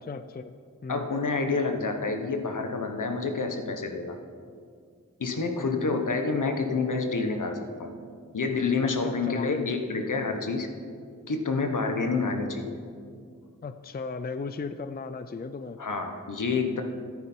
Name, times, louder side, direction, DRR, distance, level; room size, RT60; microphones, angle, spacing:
voice 1, 0.0-0.6 0.8-1.1 5.6-6.0 8.8-9.7 13.6-15.8, left 4 dB, 30° left, 10 dB, 0.4 m, -36 dB
voice 2, 0.9-4.2 5.2-7.9 8.3-10.7 11.3-12.8 15.8-16.8, left 4 dB, 70° left, 5 dB, 1.2 m, -28 dB
13.5 x 10.5 x 4.4 m, 2.2 s
wide cardioid pair, 75°, 32 cm